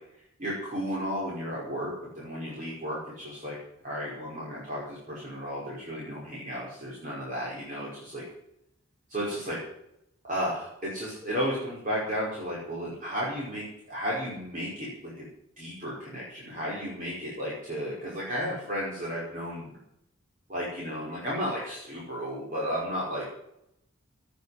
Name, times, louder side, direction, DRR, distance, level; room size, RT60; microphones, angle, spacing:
voice 1, 0.4-3.6 3.8-8.2 9.1-9.6 10.2-15.3 15.6-19.7 20.5-23.2, equal, 40° right, -6 dB, 5.4 m, -33 dB
18.0 x 8.1 x 8.1 m, 0.79 s
head